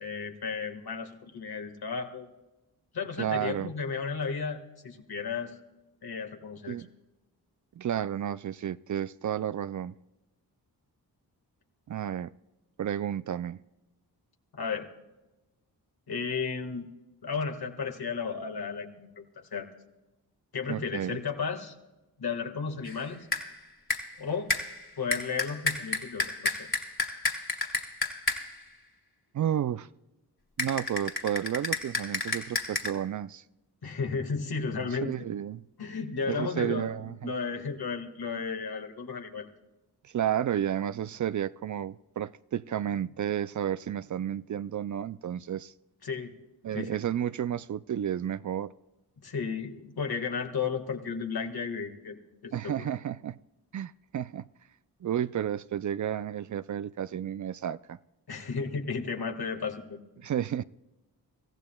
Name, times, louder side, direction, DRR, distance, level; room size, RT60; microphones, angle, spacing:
voice 1, 0.0-2.3 2.9-5.5 6.0-6.8 14.5-14.9 16.1-16.9 17.2-19.3 19.5-19.7 20.5-21.7 22.2-23.3 24.2-24.5 25.0-26.7 33.8-35.2 35.8-39.5 46.0-46.3 46.7-47.0 49.2-52.2 52.4-52.9 58.3-60.0, left 5 dB, 70° left, 4 dB, 1.8 m, -34 dB
voice 2, 3.2-3.7 6.7-6.9 7.8-9.9 11.9-12.3 12.8-13.6 20.7-21.2 29.3-29.9 30.6-33.4 35.0-35.6 36.3-37.3 40.0-45.7 46.6-48.7 52.5-53.4 53.7-54.5 55.0-58.0 60.2-60.6, right 10 dB, 50° right, 16 dB, 0.4 m, -32 dB
sound 1, 22.9-23.1 23.3-23.6 23.9-24.2 24.5-28.6 30.6-32.9, left 2 dB, 30° left, 2.3 m, -32 dB
24.5 x 15.0 x 2.3 m, 1.0 s
cardioid pair, 50°, 39 cm